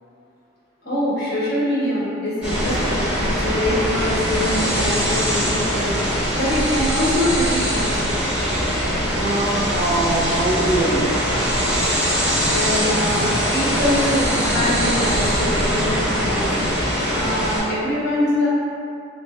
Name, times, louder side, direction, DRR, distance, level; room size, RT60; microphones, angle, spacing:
voice 1, 0.8-5.9 6.3-8.1 12.5-16.5 17.1-18.5, left 1 dB, 50° left, -8 dB, 1.1 m, -24 dB
sound 1, 2.4-17.6, equal, 5° right, 0.8 m, -22 dB
sound 2, 7.2-16.7, equal, 75° left, 1.0 m, -34 dB
voice 2, 9.2-11.6, right 2 dB, 45° right, -2 dB, 0.5 m, -23 dB
5.9 x 2.1 x 2.4 m, 2.6 s
head